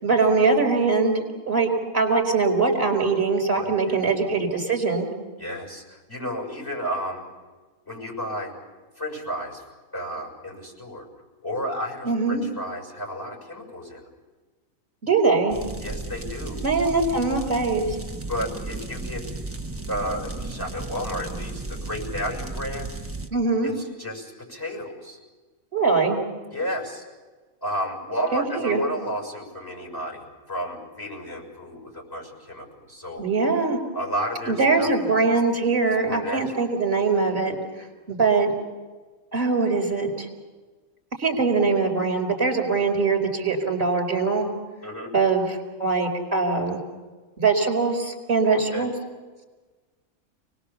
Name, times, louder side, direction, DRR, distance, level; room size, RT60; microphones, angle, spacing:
voice 1, 0.0-5.1 12.0-12.4 15.0-15.6 16.6-17.8 23.3-23.7 25.7-26.2 28.3-28.8 33.2-33.8 34.5-37.6 38.1-38.5 39.3-40.3 41.2-44.5 45.1-46.8 47.4-48.9, right 4 dB, 40° right, 4 dB, 4.8 m, -22 dB
voice 2, 3.5-4.4 5.4-7.2 7.8-8.5 9.0-9.6 9.9-11.1 11.4-14.1 15.8-16.6 18.3-19.2 19.9-22.9 23.6-25.2 26.5-27.0 27.6-33.2 33.9-34.9 35.9-36.7 44.8-45.1 48.5-48.9, equal, 15° left, -1 dB, 6.7 m, -32 dB
sound 1, 15.5-23.3, right 3 dB, 10° right, 1.3 m, -34 dB
29.5 x 20.5 x 7.1 m, 1.3 s
omnidirectional pair, 1.5 m